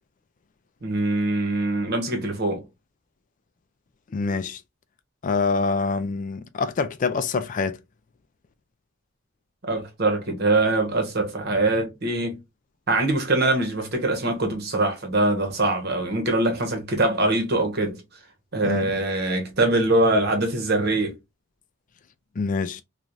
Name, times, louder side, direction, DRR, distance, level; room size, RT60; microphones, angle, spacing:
voice 1, 0.8-2.6 9.6-12.4 12.9-18.0 18.5-21.2, right 2 dB, 55° right, 1.1 m, -23 dB
voice 2, 4.1-4.6 5.2-7.8 18.6-18.9 22.4-22.8, left 4 dB, 40° left, 0.3 m, -25 dB
3.1 x 2.4 x 2.5 m
head